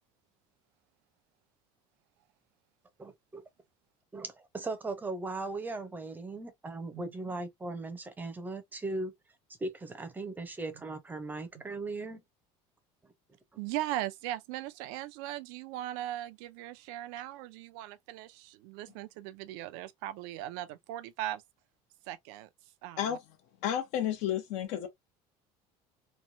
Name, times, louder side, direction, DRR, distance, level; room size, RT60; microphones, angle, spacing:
voice 1, 3.0-3.4 4.1-9.1 9.6-12.2, right 2 dB, 15° right, 0.6 m, -38 dB
voice 2, 13.6-21.4 22.0-23.2, right 14 dB, 80° right, 0.5 m, -39 dB
voice 3, 23.6-24.9, left 10 dB, 70° left, 1.0 m, -31 dB
3.1 x 2.2 x 2.7 m
cardioid pair, 140°, 13 cm